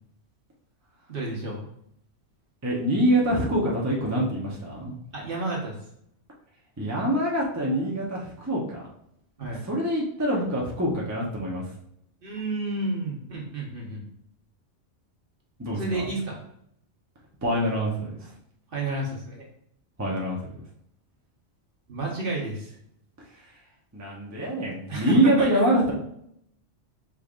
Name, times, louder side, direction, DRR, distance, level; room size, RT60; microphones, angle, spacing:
voice 1, 1.1-1.6 5.1-5.7 9.4-9.6 12.2-14.0 15.7-16.4 18.7-19.5 21.9-22.8 24.9-25.6, right 2 dB, 50° right, -2 dB, 1.4 m, -31 dB
voice 2, 2.6-4.9 6.8-8.9 9.6-11.7 15.6-16.1 17.4-18.1 20.0-20.5 23.9-25.9, right 1 dB, 15° right, -3 dB, 0.9 m, -25 dB
5.1 x 4.0 x 2.5 m, 0.71 s
omnidirectional pair, 1.2 m